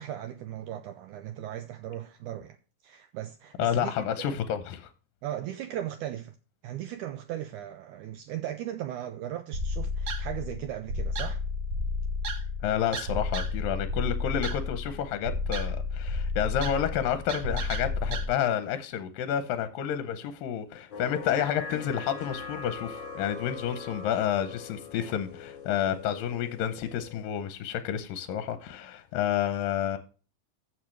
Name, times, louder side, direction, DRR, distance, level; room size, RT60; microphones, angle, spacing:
voice 1, 0.0-2.6 2.8-4.3 5.2-6.3 6.6-11.4, right 12 dB, 90° right, 1.8 m, -37 dB
voice 2, 3.6-4.9 12.6-30.0, left 9 dB, 75° left, 2.3 m, -30 dB
sound 1, 9.5-18.3, left 2 dB, 70° right, 1.2 m, -32 dB
sound 2, 20.9-27.2, left 5 dB, 60° left, 2.8 m, -41 dB
15.0 x 6.3 x 3.2 m
omnidirectional pair, 4.2 m